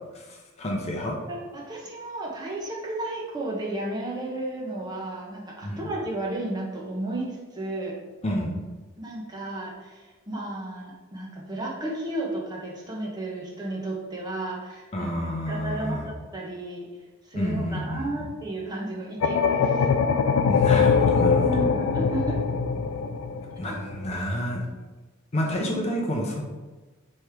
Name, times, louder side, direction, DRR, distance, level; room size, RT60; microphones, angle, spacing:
voice 1, 0.1-1.2 5.6-5.8 8.2-8.5 14.9-16.1 17.3-18.3 20.5-21.6 23.6-24.6 25.3-26.4, equal, 30° left, 0 dB, 0.6 m, -29 dB
voice 2, 1.3-8.0 9.0-15.1 15.5-16.9 17.2-19.9 21.4-22.4 23.6-23.8, right 1 dB, 20° right, -3 dB, 0.8 m, -33 dB
sound 1, 19.2-24.2, left 5 dB, 80° left, 0.3 m, -22 dB
3.5 x 3.2 x 4.6 m, 1.2 s
head